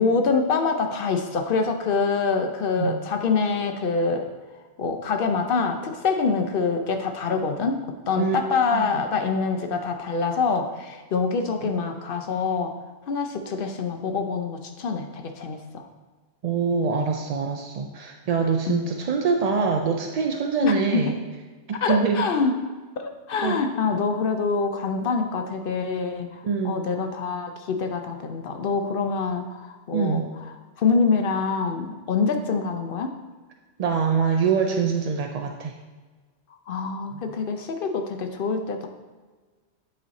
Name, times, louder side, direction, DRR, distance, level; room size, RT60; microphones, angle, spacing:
voice 1, 0.0-4.3 4.8-7.8 8.1-12.8 13.1-15.8 18.7-19.0 20.6-21.1 21.8-22.5 23.0-30.2 30.8-33.1 36.7-38.9, left 4 dB, 60° left, 5 dB, 0.7 m, -25 dB
voice 2, 16.4-21.2 21.7-22.3 23.4-23.6 26.4-26.8 29.9-30.3 33.8-35.8 37.1-37.3, right 5 dB, 65° right, 2 dB, 0.4 m, -24 dB
8.7 x 3.2 x 4.0 m, 1.4 s
omnidirectional pair, 1.2 m